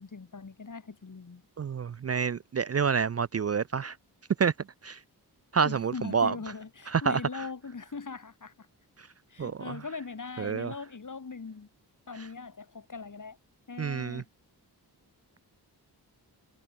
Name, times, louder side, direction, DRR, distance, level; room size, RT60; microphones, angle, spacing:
voice 1, 0.0-1.4 5.6-8.7 9.3-11.7 12.1-13.4 13.7-14.3, left 4 dB, 45° left, 6.1 m, -41 dB
voice 2, 1.6-3.9 4.4-4.5 4.8-5.0 5.5-6.3 6.9-7.2 9.4-9.7 10.4-10.7 13.8-14.2, right 6 dB, 35° right, 0.5 m, -28 dB
wide cardioid pair, 85°, 41 cm